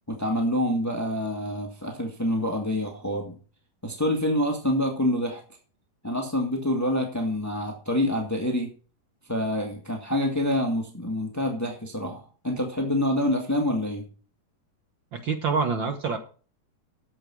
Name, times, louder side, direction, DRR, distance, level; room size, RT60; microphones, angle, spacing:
voice 1, 0.1-3.3 3.8-5.4 6.0-8.7 9.3-14.1, left 1 dB, 10° left, 2 dB, 0.9 m, -26 dB
voice 2, 15.1-16.2, right 5 dB, 60° right, 6 dB, 1.2 m, -26 dB
12.0 x 7.8 x 6.0 m, 0.39 s
omnidirectional pair, 3.8 m